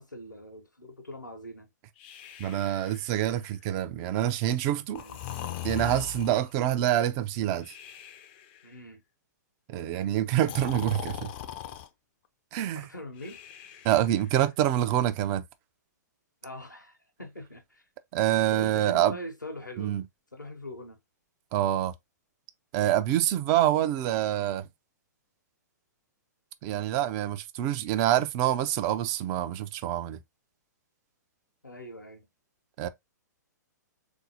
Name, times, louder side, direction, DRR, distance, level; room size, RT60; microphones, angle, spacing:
voice 1, 0.0-1.7 4.9-5.2 8.6-9.0 12.7-13.4 16.4-17.8 18.5-20.0 20.3-21.0 31.6-32.3, equal, 85° left, 0.9 m, -42 dB
Breathing, 2.0-3.5 4.9-6.6 7.6-8.6 10.4-11.9 13.2-14.4, left 11 dB, 35° left, 0.4 m, -40 dB
voice 2, 2.4-5.0 5.6-7.7 9.7-11.3 12.5-12.9 13.8-15.4 18.1-19.2 19.8-20.0 21.5-21.9 22.7-24.7 26.6-30.2 32.8-32.9, right 12 dB, 30° right, 0.4 m, -26 dB
3.9 x 2.6 x 2.7 m
figure-of-eight pair, 110°, 10 cm